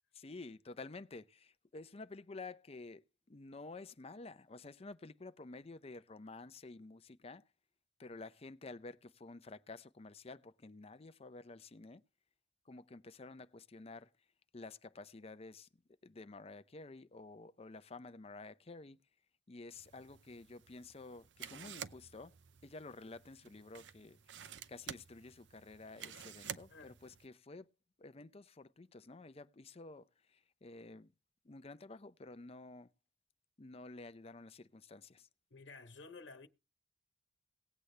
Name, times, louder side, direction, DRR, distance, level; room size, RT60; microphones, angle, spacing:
voice 1, 0.1-3.0 3.3-7.4 8.0-12.0 12.7-14.1 14.5-15.7 16.0-19.0 19.5-22.3 22.6-24.2 24.7-27.7 28.0-31.1 31.4-32.9 33.6-35.3, left 3 dB, 35° left, 0.6 m, -51 dB
sound 1, 19.7-27.3, right 8 dB, 75° right, 0.6 m, -51 dB
voice 2, 35.5-36.5, left 3 dB, 80° left, 1.2 m, -53 dB
18.0 x 8.3 x 3.3 m
head